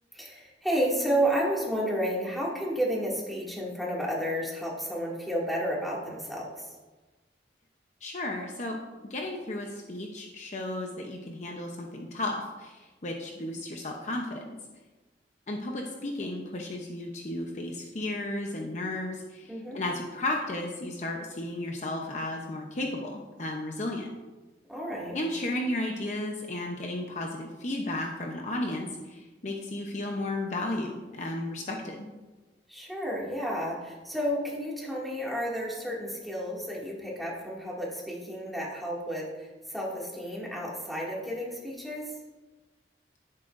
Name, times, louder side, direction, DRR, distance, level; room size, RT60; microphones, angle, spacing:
voice 1, 0.1-6.7 19.5-19.8 24.7-25.2 32.7-42.1, equal, ahead, -5 dB, 2.3 m, -31 dB
voice 2, 8.0-8.8 9.0-14.6 15.5-24.1 25.1-32.1, left 1 dB, 40° left, 1 dB, 0.8 m, -34 dB
11.5 x 9.9 x 2.6 m, 1.2 s
head